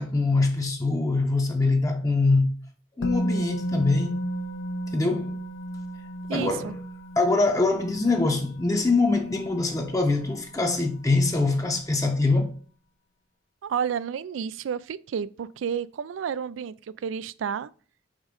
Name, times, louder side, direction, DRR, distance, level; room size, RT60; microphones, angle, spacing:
voice 1, 0.0-2.5 3.0-4.2 4.9-5.4 6.3-6.8 7.2-12.5, left 3 dB, 15° left, 0.7 m, -23 dB
Musical instrument, 3.0-10.9 11.2-11.4, right 1 dB, 85° left, 0.8 m, -34 dB
voice 2, 6.3-6.8 13.6-16.7 17.0-17.7, right 7 dB, 85° right, 0.3 m, -30 dB
5.1 x 3.6 x 5.1 m
head